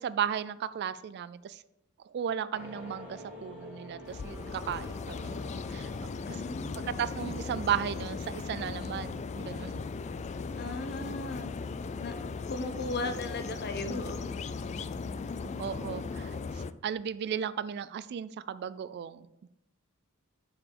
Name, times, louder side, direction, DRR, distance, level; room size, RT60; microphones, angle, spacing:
voice 1, 0.0-1.6 2.1-5.4 5.7-6.1 6.9-9.8 11.0-11.2 15.4-19.5, right 8 dB, 50° right, 16 dB, 0.3 m, -35 dB
sound 1, 2.5-6.7, left 1 dB, 5° right, 1.9 m, -47 dB
sound 2, 4.1-16.7, left 4 dB, 30° left, 0.3 m, -37 dB
voice 2, 6.3-6.9 10.6-11.5 12.0-12.1 12.5-14.2, left 2 dB, 50° left, 9 dB, 0.8 m, -36 dB
7.2 x 4.8 x 6.6 m, 0.85 s
head